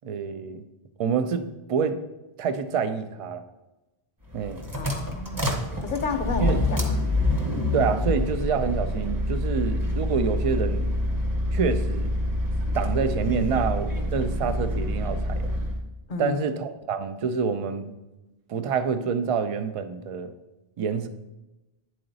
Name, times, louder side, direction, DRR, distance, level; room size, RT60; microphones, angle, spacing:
voice 1, 0.0-0.6 1.0-1.4 1.7-2.0 2.4-3.4 4.3-4.6 6.4-6.6 7.7-10.9 11.5-12.1 12.7-15.5 16.2-18.0 18.5-20.3 20.8-21.1, right 6 dB, 65° right, 0.3 m, -27 dB
sound 1, 4.3-15.8, left 1 dB, 20° right, 0.8 m, -27 dB
voice 2, 4.7-7.1 16.1-16.4, left 4 dB, 55° left, 0.7 m, -31 dB
9.2 x 3.9 x 4.0 m
omnidirectional pair, 1.1 m